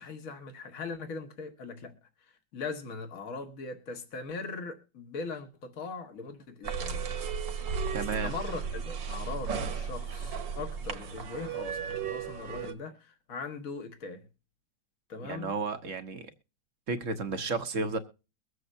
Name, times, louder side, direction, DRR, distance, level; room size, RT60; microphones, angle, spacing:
voice 1, 0.0-7.0 8.2-14.3 15.1-15.5, left 4 dB, 50° left, 1.8 m, -40 dB
sound 1, 6.6-12.7, right 6 dB, 85° right, 1.9 m, -35 dB
voice 2, 7.9-8.3 15.2-16.3 16.9-18.0, right 4 dB, 50° right, 1.2 m, -32 dB
22.5 x 7.8 x 2.6 m
omnidirectional pair, 2.0 m